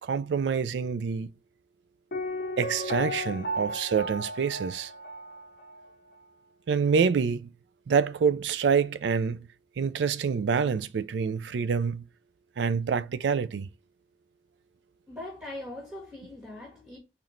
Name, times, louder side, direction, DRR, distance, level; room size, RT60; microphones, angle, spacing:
voice 1, 0.0-1.3 2.6-4.9 6.7-7.5 7.9-9.5 9.8-12.0 12.6-13.7, right 6 dB, 90° right, 0.4 m, -26 dB
Piano, 2.1-5.9 6.1-6.2, left 1 dB, 60° left, 0.6 m, -35 dB
voice 2, 15.1-17.0, left 1 dB, 10° right, 1.5 m, -41 dB
4.3 x 4.0 x 3.1 m
head